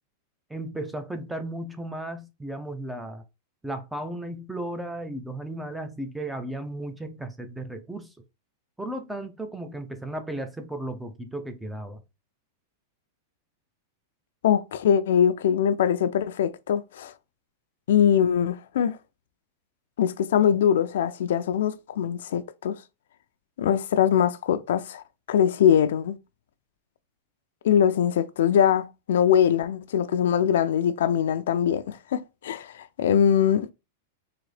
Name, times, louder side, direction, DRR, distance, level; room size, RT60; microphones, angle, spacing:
voice 1, 0.5-3.2 3.6-8.1 8.8-12.0, right 1 dB, 5° right, 0.4 m, -35 dB
voice 2, 14.4-17.1 17.9-19.0 20.0-22.8 23.6-26.1 27.6-33.7, left 9 dB, 75° left, 0.4 m, -22 dB
3.9 x 2.7 x 3.2 m
supercardioid pair, 160°, 0 cm